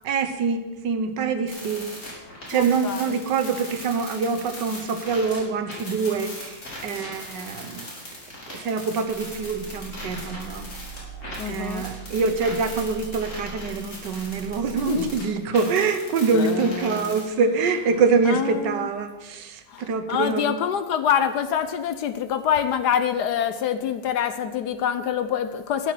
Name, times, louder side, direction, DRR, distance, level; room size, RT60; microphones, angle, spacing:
voice 1, 0.0-1.9 2.5-7.9 8.5-10.7 11.5-20.5, right 5 dB, 70° right, 9 dB, 1.6 m, -25 dB
sound 1, 1.5-5.4 5.7-15.2 15.5-17.2, left 1 dB, 40° left, 3.8 m, -39 dB
voice 2, 2.5-3.1 11.4-11.9 14.9-15.1 16.3-17.3 18.2-18.9 19.7-25.9, left 9 dB, 70° left, 10 dB, 1.1 m, -26 dB
sound 2, 9.0-15.2, right 2 dB, 5° right, 3.1 m, -41 dB
12.0 x 7.4 x 7.6 m, 1.1 s
omnidirectional pair, 2.0 m